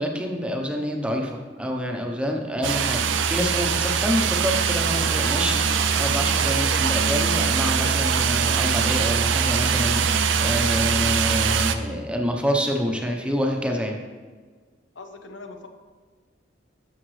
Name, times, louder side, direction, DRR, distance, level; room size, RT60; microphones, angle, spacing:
voice 1, 0.0-14.0, equal, 5° right, 1 dB, 0.9 m, -27 dB
sound 1, 2.6-11.8, right 6 dB, 75° right, 0.6 m, -22 dB
voice 2, 14.9-15.7, left 3 dB, 75° left, 5 dB, 1.0 m, -41 dB
12.5 x 7.1 x 3.3 m, 1.5 s
head